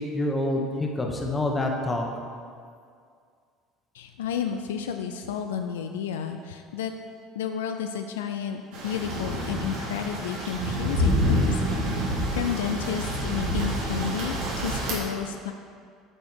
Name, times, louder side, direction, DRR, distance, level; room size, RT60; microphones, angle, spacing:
voice 1, 0.0-2.0, left 1 dB, 20° left, 1 dB, 1.2 m, -27 dB
voice 2, 3.9-6.9 7.3-11.6 12.1-15.5, left 8 dB, 85° left, 6 dB, 0.4 m, -31 dB
sound 1, 8.7-14.9, equal, 70° right, 1.9 m, -27 dB
8.5 x 5.3 x 4.7 m, 2.2 s
hypercardioid pair, 75°, 0 cm